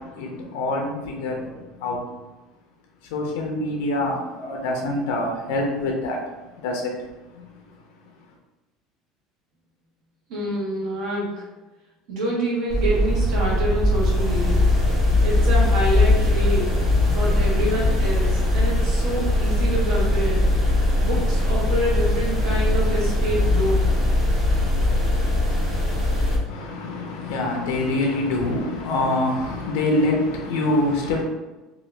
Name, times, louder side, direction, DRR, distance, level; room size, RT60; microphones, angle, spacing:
voice 1, 0.0-2.0 3.0-6.2 6.6-7.1 7.3-7.5 26.5-31.2, left 2 dB, 90° left, 1 dB, 0.5 m, -25 dB
voice 2, 10.3-11.4 12.1-14.7 15.2-16.8 17.1-20.4 21.0-23.9, right 1 dB, 50° right, -4 dB, 1.1 m, -27 dB
sound 1, 12.7-26.4, left 1 dB, 25° right, 0.8 m, -20 dB
2.8 x 2.4 x 3.2 m, 1.1 s
cardioid pair, 175°, 0 cm